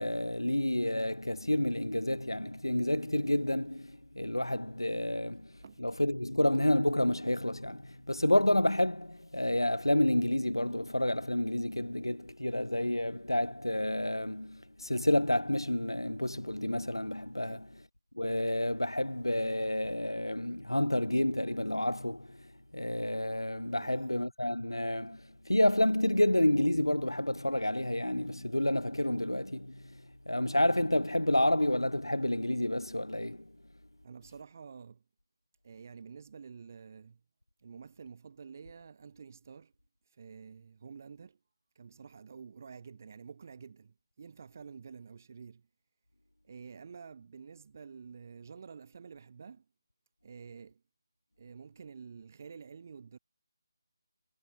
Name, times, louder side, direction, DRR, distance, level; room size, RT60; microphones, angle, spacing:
voice 1, 0.0-17.7 18.2-33.4, left 1 dB, 90° left, 0.5 m, -29 dB
voice 2, 5.6-6.0 17.4-17.6 23.8-24.2 34.0-35.0 35.6-37.2 37.6-39.7 40.1-41.4 41.8-45.7 46.4-49.7 50.2-50.8 51.4-53.2, right 6 dB, 40° right, 7.0 m, -49 dB
figure-of-eight pair, 155°, 2 cm